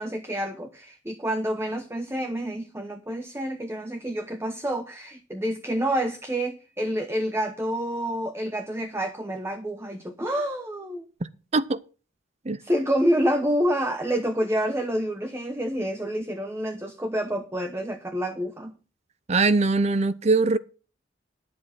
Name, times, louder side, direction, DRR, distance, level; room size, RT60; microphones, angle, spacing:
voice 1, 0.0-11.0 12.6-18.7, equal, 15° right, 1.0 m, -28 dB
voice 2, 19.3-20.6, right 3 dB, 35° right, 0.6 m, -21 dB
11.0 x 7.6 x 5.9 m
head